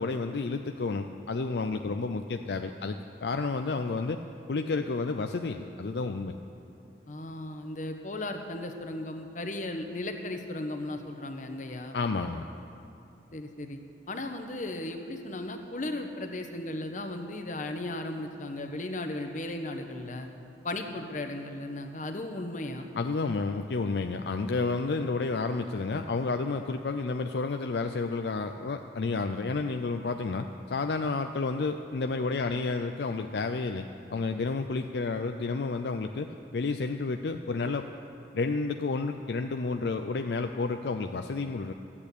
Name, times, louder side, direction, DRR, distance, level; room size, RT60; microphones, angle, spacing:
voice 1, 0.0-4.2 4.5-6.3 11.9-12.5 23.0-37.9 38.3-41.7, left 3 dB, 70° left, 6 dB, 0.5 m, -31 dB
voice 2, 7.1-12.0 13.3-13.8 14.1-20.3 20.6-22.9, left 1 dB, 45° left, 5 dB, 1.1 m, -36 dB
13.5 x 8.6 x 8.4 m, 2.8 s
head